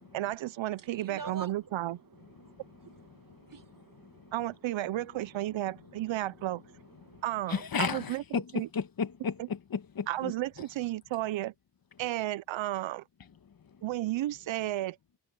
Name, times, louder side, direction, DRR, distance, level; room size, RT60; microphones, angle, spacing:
voice 1, 0.1-2.0 4.3-6.6 7.2-8.7 9.4-9.5 10.1-11.5 12.0-13.0 13.8-15.0, right 15 dB, 90° right, 0.6 m, -33 dB
voice 2, 0.8-1.7 2.2-4.3 5.9-6.0 7.0-7.2, right 4 dB, 45° right, 1.8 m, -48 dB
voice 3, 7.5-10.3, left 6 dB, 50° left, 1.3 m, -33 dB
wide cardioid pair, 115°, 45 cm